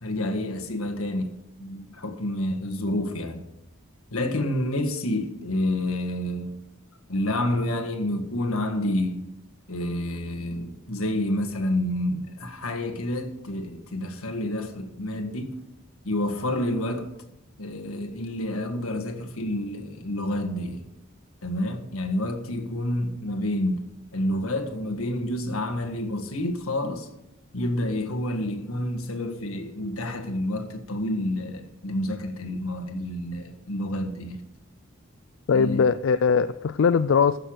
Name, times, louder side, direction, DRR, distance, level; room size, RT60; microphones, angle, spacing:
voice 1, 0.0-3.4 4.1-6.6 7.1-9.3 9.7-15.6 16.0-17.1 17.6-20.8 21.4-23.8 24.1-27.1 27.5-34.4 35.5-35.9, left 1 dB, 80° left, 1.7 m, -29 dB
voice 2, 35.5-37.4, left 6 dB, 60° left, 0.4 m, -21 dB
15.0 x 6.8 x 6.4 m
head